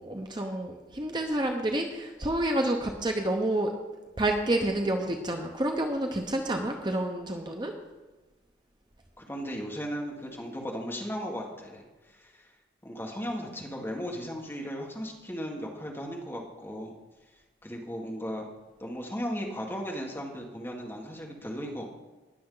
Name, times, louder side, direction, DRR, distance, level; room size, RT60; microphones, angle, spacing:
voice 1, 0.0-3.7 4.2-7.7, right 1 dB, 25° right, 3 dB, 0.8 m, -29 dB
voice 2, 9.2-11.8 12.2-12.5 12.8-16.9 17.6-18.5 18.8-21.8, equal, 15° left, -1 dB, 1.6 m, -36 dB
19.5 x 6.8 x 3.9 m, 1.2 s
head